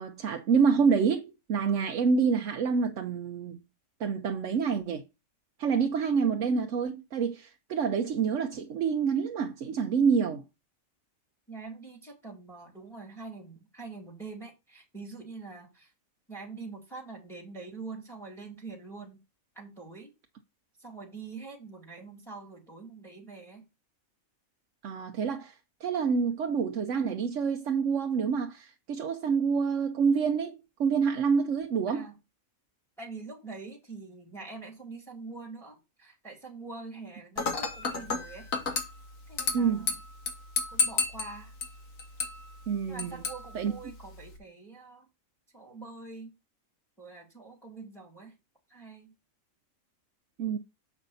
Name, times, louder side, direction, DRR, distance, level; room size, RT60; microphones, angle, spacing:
voice 1, 0.0-3.6 4.0-5.0 5.6-10.4 24.8-25.6 25.8-32.0 39.5-39.9 42.7-43.2 43.5-43.7 50.4-50.6, right 6 dB, 70° right, 1.1 m, -27 dB
voice 2, 11.5-15.9 16.3-19.2 19.5-20.1 20.8-23.7 31.9-32.2 33.0-38.8 39.3-39.9 40.7-41.5 42.9-45.1 45.5-46.3 47.0-48.4 48.7-49.1, right 4 dB, ahead, 2.3 m, -44 dB
Dishes pots and pans / Glass, 37.4-44.4, left 4 dB, 75° left, 1.8 m, -33 dB
7.3 x 5.3 x 4.0 m
omnidirectional pair, 1.4 m